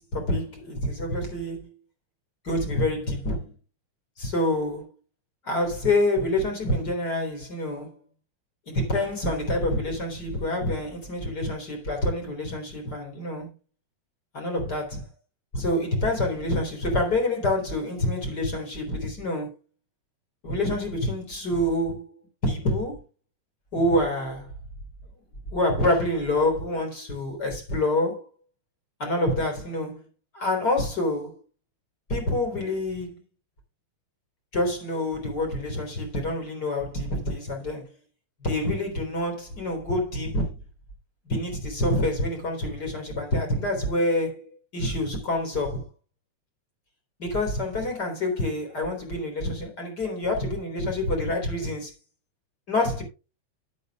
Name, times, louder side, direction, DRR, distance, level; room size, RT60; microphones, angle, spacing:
voice 1, 0.0-1.7 2.4-3.5 4.2-4.9 5.4-7.9 8.7-13.5 14.3-15.1 15.5-19.5 20.4-22.0 22.4-23.0 23.7-24.5 25.5-28.2 29.0-30.0 30.3-31.3 32.1-33.2 34.5-37.9 38.4-40.5 41.3-44.4 44.7-45.8 47.2-51.9 52.7-53.0, left 1 dB, 35° left, 4.2 m, -27 dB
12.0 x 11.0 x 2.3 m
omnidirectional pair, 3.4 m